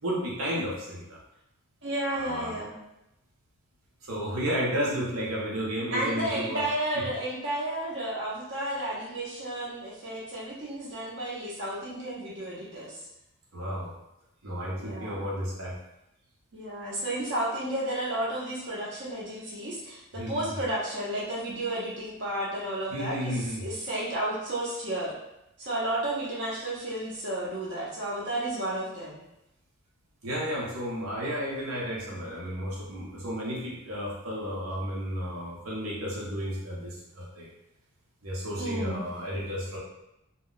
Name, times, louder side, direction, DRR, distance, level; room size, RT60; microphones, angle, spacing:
voice 1, 0.0-1.2 2.1-2.6 4.0-6.6 6.9-7.0 12.7-12.9 13.5-13.9 14.4-15.7 20.1-20.5 22.9-23.6 30.2-37.5 38.2-39.8, equal, 85° right, -4 dB, 0.8 m, -32 dB
voice 2, 1.8-2.8 5.9-13.0 14.8-15.3 16.5-25.1 25.6-29.2 38.6-39.0, right 1 dB, 55° right, -7 dB, 0.7 m, -32 dB
2.2 x 2.1 x 3.8 m, 0.87 s
head